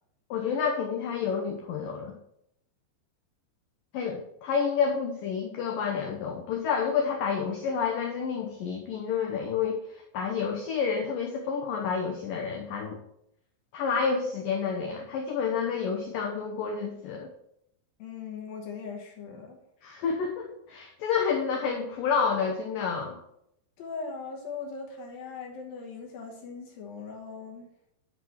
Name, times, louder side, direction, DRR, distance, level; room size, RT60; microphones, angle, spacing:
voice 1, 0.3-2.1 3.9-13.0 13.7-17.3 19.8-23.2, left 6 dB, 85° left, 1 dB, 1.9 m, -29 dB
voice 2, 18.0-19.6 23.8-27.7, left 5 dB, 70° left, 1 dB, 2.4 m, -39 dB
10.0 x 4.8 x 5.6 m, 0.76 s
omnidirectional pair, 5.3 m